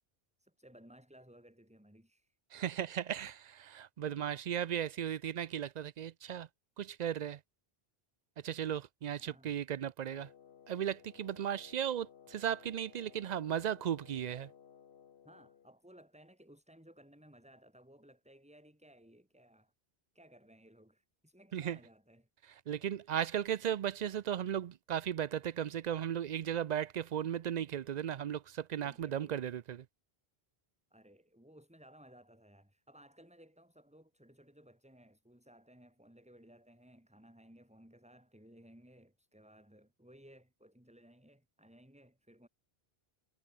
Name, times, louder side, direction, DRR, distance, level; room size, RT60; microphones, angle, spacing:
voice 1, 0.4-2.4 9.2-9.6 15.2-19.7 20.1-22.3 22.7-23.2 28.8-29.4 30.9-42.5, equal, 5° right, 3.0 m, -60 dB
voice 2, 2.5-6.5 6.8-7.4 8.4-10.3 10.7-14.5 21.5-21.8 22.7-29.8, right 9 dB, 55° right, 0.5 m, -36 dB
Wind instrument woodwind instrument, 10.0-15.7, left 8 dB, 75° left, 1.2 m, -59 dB
omnidirectional pair, 1.0 m